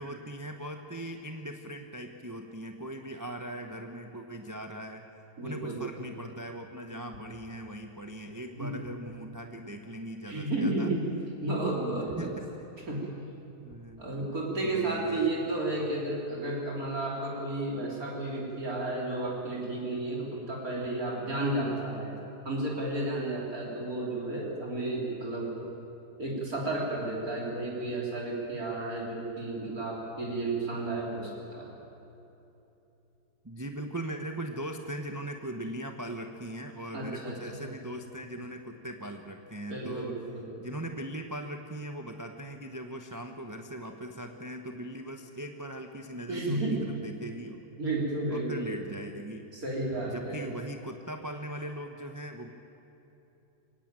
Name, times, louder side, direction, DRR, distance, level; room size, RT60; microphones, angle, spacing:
voice 1, 0.0-5.0 5.4-10.9 12.1-12.5 13.6-14.0 14.6-15.3 33.4-40.2 40.6-47.6 48.3-49.5 50.1-52.5, right 1 dB, 15° right, 4 dB, 0.9 m, -40 dB
voice 2, 5.4-5.8 8.6-8.7 10.3-11.0 11.4-12.4 12.9-13.2 14.0-22.1 22.4-25.5 26.2-31.7 36.9-37.4 39.7-40.5 46.3-46.8 47.8-48.7 49.5-50.4, right 2 dB, 60° right, -3 dB, 4.0 m, -32 dB
23.5 x 17.5 x 9.0 m, 3.0 s
omnidirectional pair, 1.8 m